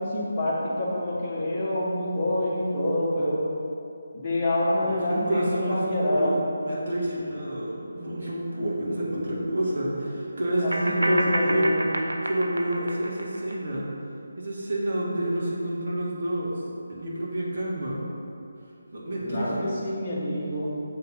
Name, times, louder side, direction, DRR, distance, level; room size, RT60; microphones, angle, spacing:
voice 1, 0.0-3.4 4.1-6.4 10.6-11.9 19.2-20.7, left 1 dB, 25° left, -8 dB, 1.5 m, -27 dB
voice 2, 4.8-11.7 12.2-13.9 14.4-16.5 16.9-18.1 18.9-19.7, right 1 dB, 45° right, -5 dB, 1.6 m, -28 dB
sound 1, 8.7-8.8 10.7-13.6, right 1 dB, 70° right, 0.5 m, -30 dB
6.5 x 4.2 x 5.3 m, 2.6 s
figure-of-eight pair, 150°, 0 cm